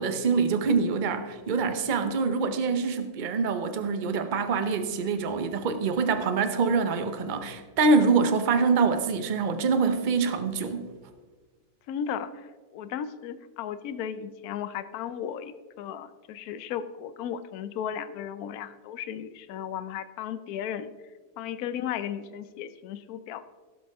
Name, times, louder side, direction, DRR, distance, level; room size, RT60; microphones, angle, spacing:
voice 1, 0.0-10.9, right 4 dB, 45° right, 8 dB, 0.6 m, -25 dB
voice 2, 11.9-12.5 12.7-20.9 21.4-23.4, left 9 dB, 65° left, 13 dB, 1.0 m, -35 dB
17.0 x 7.5 x 3.5 m, 1.4 s
omnidirectional pair, 1.9 m